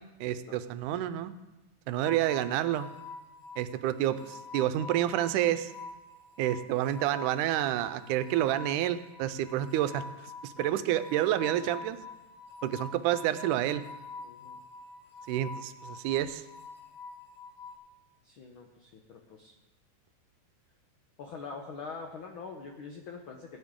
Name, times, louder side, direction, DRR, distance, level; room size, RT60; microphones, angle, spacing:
voice 1, 0.2-1.3 1.9-2.9 3.6-5.7 6.4-10.0 10.4-12.0 12.6-13.8 15.3-16.4, right 12 dB, 90° right, 12 dB, 2.1 m, -29 dB
sound 1, 2.0-17.8, left 3 dB, 40° left, 0.9 m, -46 dB
voice 2, 14.2-14.6 18.2-19.5 21.2-23.6, left 4 dB, 80° left, 2 dB, 1.1 m, -44 dB
17.5 x 9.4 x 3.7 m, 1.0 s
omnidirectional pair, 3.5 m